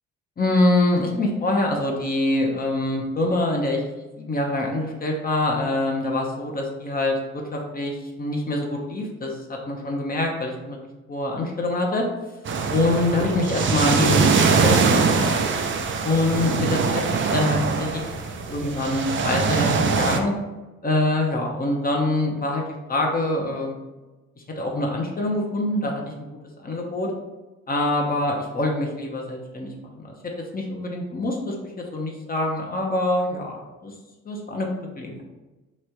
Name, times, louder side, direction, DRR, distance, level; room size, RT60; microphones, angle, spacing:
voice 1, 0.4-3.8 4.2-10.8 11.1-12.1 12.7-15.3 16.0-18.0 18.5-20.3 20.8-22.6 22.9-23.8 24.6-26.0 26.6-27.1 27.7-30.2 30.5-33.9 34.3-34.7 35.0-35.2, left 2 dB, 30° left, 0 dB, 0.8 m, -25 dB
sound 1, 12.5-20.2, right 5 dB, 40° right, 0.5 m, -22 dB
3.1 x 2.6 x 4.5 m, 1.1 s
cardioid pair, 90°, 30 cm